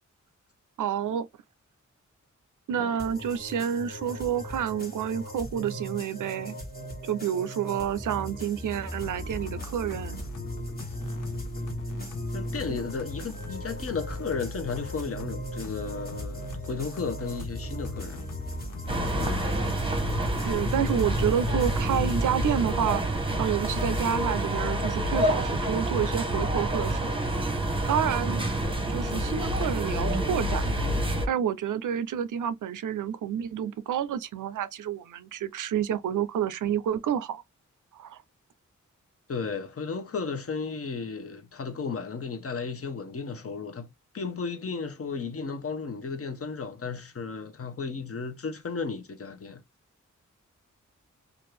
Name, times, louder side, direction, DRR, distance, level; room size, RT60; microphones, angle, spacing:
voice 1, 0.8-1.3 2.7-6.5 7.0-10.2 12.7-12.8 20.4-27.1 27.9-28.5 28.9-30.9 31.3-37.4 37.9-38.2, right 9 dB, 85° right, 0.5 m, -29 dB
sound 1, 3.0-22.2, equal, 30° left, 1.3 m, -38 dB
sound 2, 9.0-23.1, left 2 dB, 90° left, 0.6 m, -40 dB
voice 2, 12.3-16.4 16.7-18.3 19.2-19.5 39.3-49.6, left 5 dB, 50° left, 0.7 m, -34 dB
sound 3, 18.9-31.3, right 1 dB, 15° right, 0.8 m, -28 dB
2.6 x 2.4 x 3.1 m
cardioid pair, 55°, 31 cm